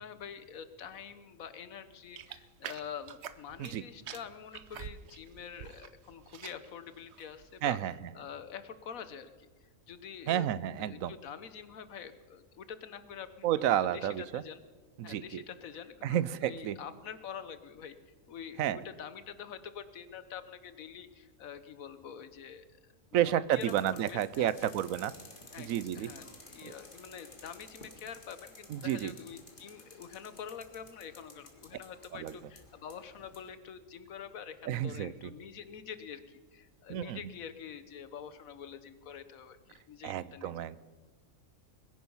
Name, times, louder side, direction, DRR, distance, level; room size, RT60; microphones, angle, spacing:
voice 1, 0.0-7.8 8.1-10.5 10.8-14.6 15.0-17.9 18.3-22.7 23.1-24.7 25.5-40.5, left 8 dB, 90° left, 12 dB, 1.4 m, -46 dB
sound 1, 2.2-3.8 4.1-5.9 6.2-6.7 7.1-7.4, right 9 dB, 60° right, 0.9 m, -45 dB
voice 2, 7.6-7.9 10.3-11.1 13.4-14.4 15.0-15.4 16.0-16.8 18.6-18.8 23.1-25.1 25.6-26.1 28.7-29.1 32.1-32.3 34.7-35.1 36.9-37.2 40.0-40.8, right 11 dB, 85° right, 17 dB, 1.0 m, -31 dB
sound 2, 23.5-33.5, left 2 dB, 40° left, 2.1 m, -54 dB
21.0 x 10.5 x 5.6 m, 1.4 s
omnidirectional pair, 1.4 m